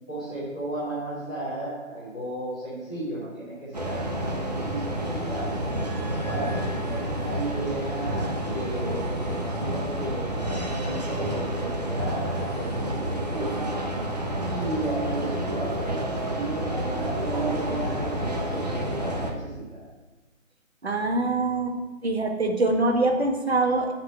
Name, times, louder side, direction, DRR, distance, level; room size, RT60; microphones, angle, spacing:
voice 1, 0.0-5.6 6.3-13.6 14.4-19.8, right 2 dB, 5° left, -14 dB, 1.0 m, -34 dB
sound 1, 3.7-19.3, right 1 dB, 30° right, 0.9 m, -29 dB
voice 2, 20.8-21.8 22.0-23.9, right 2 dB, 50° right, 3 dB, 1.6 m, -24 dB
9.3 x 6.0 x 6.6 m, 1.2 s
figure-of-eight pair, 160°, 40 cm